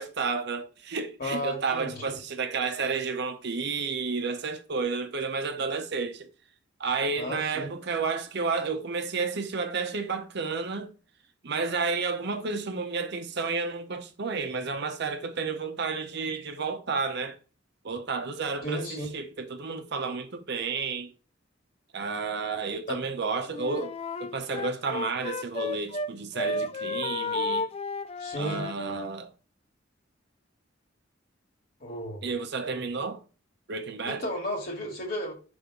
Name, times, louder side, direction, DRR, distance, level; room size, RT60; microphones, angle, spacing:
voice 1, 0.0-6.3 6.8-10.9 11.4-17.4 17.8-21.1 21.9-23.9 24.2-27.7 28.4-29.3 32.2-33.2 33.7-34.2, right 4 dB, 60° right, 0.8 m, -31 dB
voice 2, 1.2-2.0 7.2-7.7 18.6-19.1 22.9-23.0 28.2-28.6 31.8-32.2 34.0-35.3, equal, 50° left, 2.1 m, -33 dB
Wind instrument woodwind instrument, 23.5-26.1 26.3-29.1, left 2 dB, 30° left, 0.3 m, -32 dB
5.4 x 3.5 x 5.1 m
head